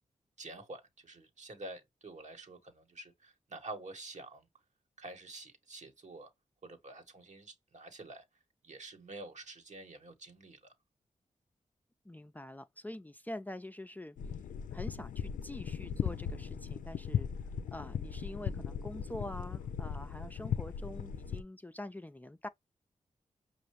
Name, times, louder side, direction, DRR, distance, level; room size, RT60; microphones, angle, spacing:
voice 1, 0.4-4.5 5.0-6.3 6.6-8.2 8.6-10.7, right 2 dB, 65° right, 1.6 m, -48 dB
voice 2, 12.0-14.2 14.7-17.3 17.7-22.5, left 1 dB, 15° left, 0.5 m, -45 dB
sound 1, 14.2-21.4, left 8 dB, 85° left, 0.4 m, -38 dB
5.5 x 2.5 x 3.1 m
cardioid pair, 45°, 13 cm